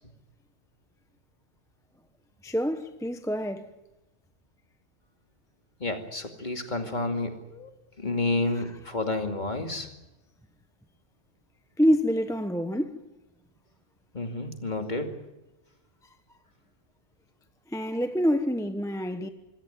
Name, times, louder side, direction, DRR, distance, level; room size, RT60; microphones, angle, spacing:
voice 1, 2.4-3.7 6.8-6.9 11.8-13.0 17.7-19.3, equal, 5° left, 0.9 m, -26 dB
voice 2, 5.8-7.7 8.0-9.9 14.1-15.2, left 2 dB, 35° left, 2.6 m, -30 dB
26.0 x 16.5 x 9.0 m
omnidirectional pair, 1.3 m